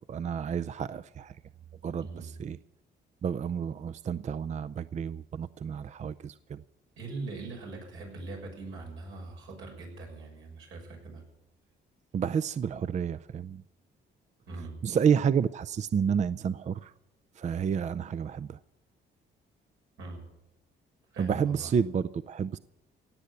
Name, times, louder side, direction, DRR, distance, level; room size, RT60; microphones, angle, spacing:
voice 1, 0.1-1.3 1.8-2.1 2.4-2.6 3.2-6.6 12.1-13.6 14.8-16.9 17.4-18.6 21.2-22.6, right 7 dB, 35° right, 14 dB, 0.5 m, -30 dB
voice 2, 2.0-2.4 7.0-11.2 14.5-14.8 20.0-20.3 21.1-21.7, right 3 dB, 85° right, 0 dB, 6.5 m, -41 dB
17.0 x 8.1 x 9.8 m, 0.91 s
cardioid pair, 90°, 20 cm